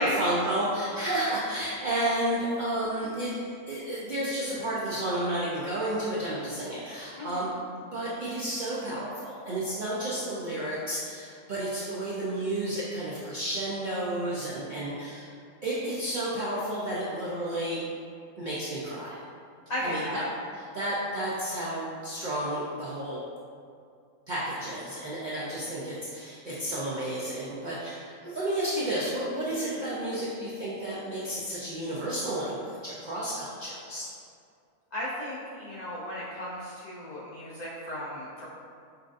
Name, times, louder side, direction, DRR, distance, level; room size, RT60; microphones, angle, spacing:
voice 1, 0.0-3.4 3.7-15.3 15.6-17.8 18.4-19.2 19.8-20.2 20.7-23.2 24.3-34.1, right 1 dB, 75° right, -7 dB, 0.4 m, -31 dB
voice 2, 19.7-20.2 34.9-38.5, left 1 dB, 85° left, -8 dB, 0.3 m, -35 dB
5.6 x 2.5 x 2.5 m, 2.3 s
omnidirectional pair, 1.5 m